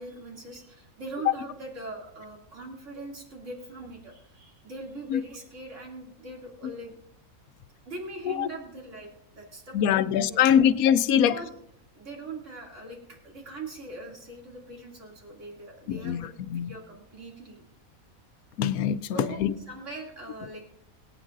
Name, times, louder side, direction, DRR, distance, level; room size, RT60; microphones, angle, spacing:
voice 1, 0.0-7.0 7.8-10.7 11.3-11.5 11.9-16.3 16.6-17.6 19.1-20.7, right 2 dB, 60° right, -1 dB, 3.0 m, -41 dB
voice 2, 9.7-11.4 15.9-16.7 18.6-19.5, left 9 dB, 85° left, 14 dB, 1.1 m, -23 dB
22.0 x 9.0 x 2.5 m, 0.74 s
omnidirectional pair, 1.5 m